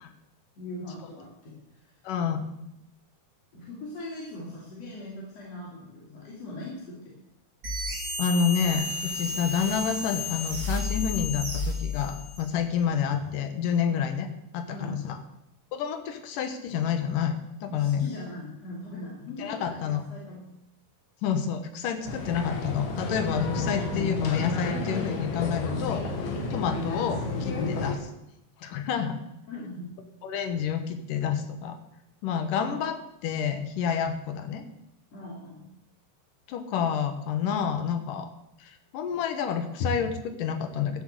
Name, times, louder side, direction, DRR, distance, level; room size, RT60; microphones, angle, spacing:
voice 1, 0.6-1.5 3.5-7.1 13.9-14.0 14.7-15.0 17.7-20.5 29.5-29.9 35.1-35.7, left 1 dB, 45° left, -5 dB, 3.8 m, -40 dB
voice 2, 2.0-2.5 8.2-14.3 14.5-15.2 15.7-18.0 19.4-20.0 21.2-26.1 26.5-28.1 28.6-29.2 30.2-31.8 32.2-34.6 36.5-38.3 38.6-41.0, left 7 dB, 70° left, 8 dB, 2.6 m, -29 dB
sound 1, 7.6-12.5, left 2 dB, 25° right, 3.1 m, -32 dB
Monastery yard with tourists, 22.1-28.0, left 3 dB, 90° left, 4.1 m, -31 dB
14.0 x 8.0 x 7.8 m, 0.84 s
omnidirectional pair, 4.3 m